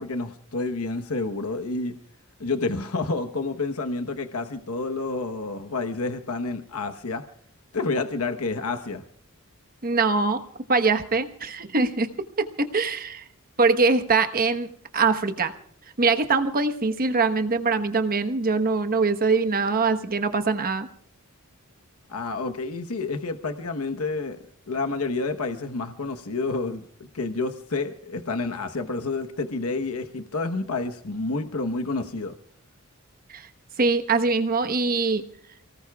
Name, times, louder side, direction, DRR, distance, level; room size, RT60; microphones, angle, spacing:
voice 1, 0.0-2.0 2.4-7.2 7.7-9.0 22.1-24.4 24.7-26.8 27.1-32.4, left 3 dB, 80° left, 7 dB, 1.1 m, -29 dB
voice 2, 9.8-10.4 10.7-12.1 12.4-13.2 13.6-15.5 16.0-20.9 33.3-33.5 33.8-35.2, right 4 dB, 45° right, 8 dB, 1.2 m, -23 dB
29.5 x 18.5 x 2.4 m, 0.62 s
head